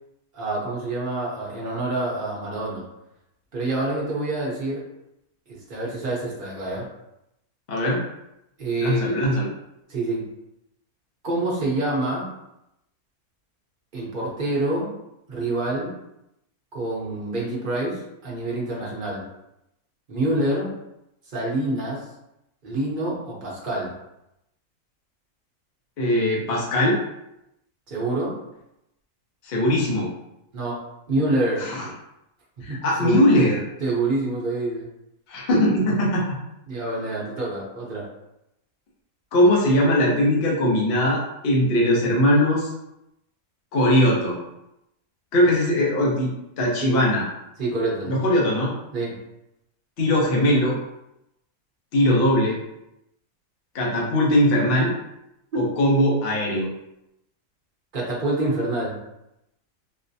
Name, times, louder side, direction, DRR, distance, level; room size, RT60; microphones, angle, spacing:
voice 1, 0.3-2.8 3.5-4.8 5.7-6.9 8.6-9.2 9.9-10.3 11.2-12.3 13.9-14.9 15.3-15.9 16.7-19.3 20.1-20.8 21.3-22.1 22.6-23.9 27.9-28.4 30.5-31.7 32.7-33.3 33.8-34.9 36.7-38.1 46.8-47.0 47.6-48.2 48.9-49.2 55.5-55.6 57.9-59.0, right 2 dB, 40° right, -5 dB, 0.9 m, -26 dB
voice 2, 7.7-8.0 8.8-9.5 26.0-27.0 29.4-30.1 31.6-31.9 32.6-33.6 35.3-36.2 39.3-42.7 43.7-44.4 45.3-46.3 46.6-47.2 48.1-48.7 50.0-50.7 51.9-52.6 53.7-54.9 55.6-56.7, left 1 dB, 45° left, -3 dB, 0.9 m, -20 dB
4.0 x 2.1 x 2.7 m, 0.85 s
omnidirectional pair, 1.6 m